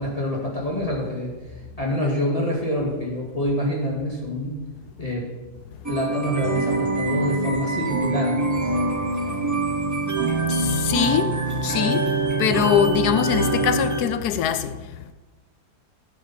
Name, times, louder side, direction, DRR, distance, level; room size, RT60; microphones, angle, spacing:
voice 1, 0.0-4.6 5.0-5.3 5.9-8.4, left 1 dB, 20° left, 2.0 m, -26 dB
sound 1, 5.8-14.0, right 3 dB, 15° right, 0.6 m, -24 dB
voice 2, 10.3-15.1, left 9 dB, 80° left, 1.2 m, -23 dB
13.0 x 8.3 x 4.3 m
omnidirectional pair, 1.7 m